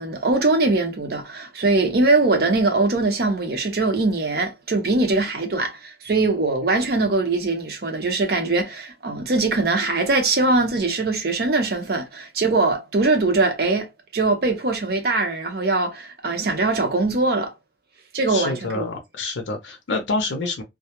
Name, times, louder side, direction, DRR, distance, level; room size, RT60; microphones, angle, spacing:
voice 1, 0.0-13.9 14.1-17.5 18.1-18.9, right 3 dB, 55° right, 0.6 m, -21 dB
voice 2, 18.3-20.6, left 3 dB, 75° left, 0.5 m, -27 dB
2.2 x 2.0 x 2.8 m
head